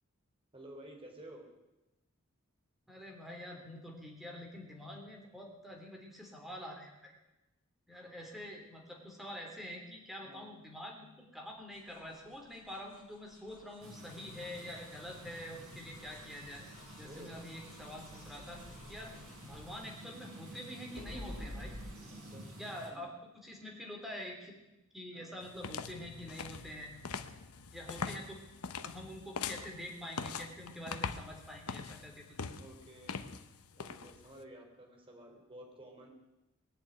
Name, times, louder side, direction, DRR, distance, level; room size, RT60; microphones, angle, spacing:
voice 1, 0.5-1.5 10.3-10.5 17.0-17.4 19.1-19.4 22.1-22.5 22.9-23.0 25.1-25.3 27.8-28.0 32.5-33.3 33.8-36.1, right 1 dB, 25° right, 1 dB, 3.5 m, -53 dB
voice 2, 2.9-7.1 7.9-16.7 16.9-18.6 18.9-19.1 19.4-21.7 22.6-24.6 24.9-26.9 27.7-28.4 28.8-32.3, left 1 dB, ahead, 0 dB, 3.2 m, -46 dB
sound 1, 11.7-20.5 20.9-21.9, left 1 dB, 45° left, 4.1 m, -52 dB
sound 2, 13.8-22.9, right 1 dB, 70° right, 5.1 m, -51 dB
sound 3, 25.4-34.4, left 5 dB, 90° left, 0.9 m, -42 dB
20.5 x 7.4 x 9.3 m, 0.98 s
head